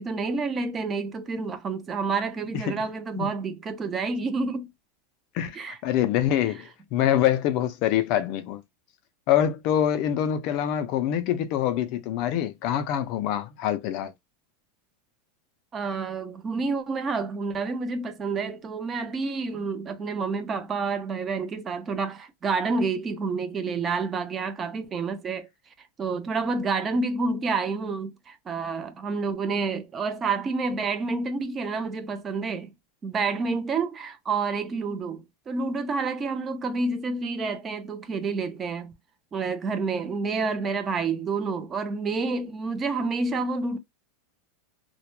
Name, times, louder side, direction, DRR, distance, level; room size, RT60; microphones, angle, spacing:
voice 1, 0.0-4.7 5.5-5.8 15.7-25.5 26.0-32.7 33.0-38.9 39.3-43.8, right 4 dB, 20° right, 0.4 m, -29 dB
voice 2, 5.8-8.6 9.3-14.1, left 11 dB, 50° left, 0.3 m, -25 dB
2.1 x 2.0 x 2.9 m
supercardioid pair, 150°, 0 cm